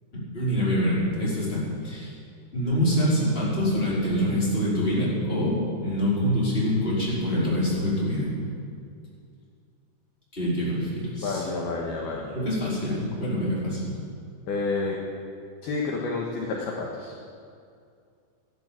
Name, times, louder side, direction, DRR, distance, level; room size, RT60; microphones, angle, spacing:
voice 1, 0.1-2.1 2.5-5.5 5.8-8.3 10.3-11.4 12.3-14.0, equal, 10° left, -7 dB, 4.2 m, -25 dB
voice 2, 11.2-12.5 14.5-15.0 15.6-17.1, left 3 dB, 70° left, -2 dB, 2.7 m, -29 dB
14.5 x 11.0 x 7.4 m, 2.4 s
omnidirectional pair, 5.4 m